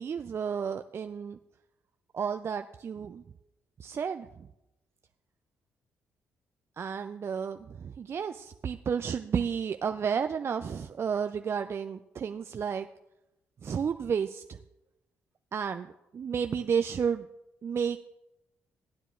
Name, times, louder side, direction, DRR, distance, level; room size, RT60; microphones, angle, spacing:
voice 1, 0.0-1.4 2.1-3.2 3.8-4.3 6.8-12.9 13.6-14.4 15.5-17.3 17.6-18.0, right 7 dB, 45° right, 8 dB, 0.3 m, -32 dB
15.5 x 9.9 x 2.4 m, 0.93 s
hypercardioid pair, 45°, 6 cm